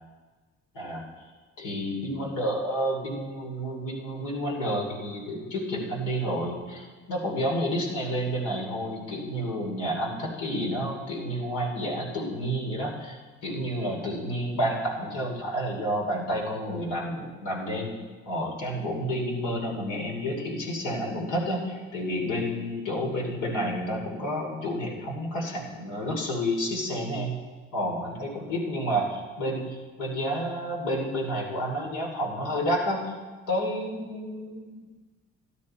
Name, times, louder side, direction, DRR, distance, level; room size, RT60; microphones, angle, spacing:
voice 1, 0.7-1.3 1.6-18.0 18.3-33.2 33.5-35.0, equal, 90° left, 0 dB, 3.0 m, -30 dB
13.0 x 12.0 x 4.3 m, 1.3 s
cardioid pair, 90°, 30 cm